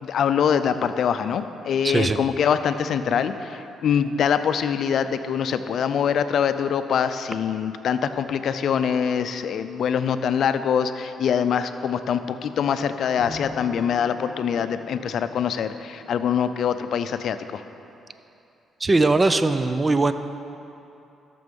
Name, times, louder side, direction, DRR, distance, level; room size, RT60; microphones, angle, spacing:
voice 1, 0.0-17.6, left 7 dB, 65° left, 10 dB, 0.5 m, -24 dB
voice 2, 1.8-2.2 18.8-20.1, right 3 dB, 25° right, 10 dB, 0.5 m, -20 dB
Bowed string instrument, 13.2-16.4, left 2 dB, 45° right, 2.3 m, -43 dB
13.0 x 6.9 x 5.3 m, 2.8 s
cardioid pair, 90°, 0 cm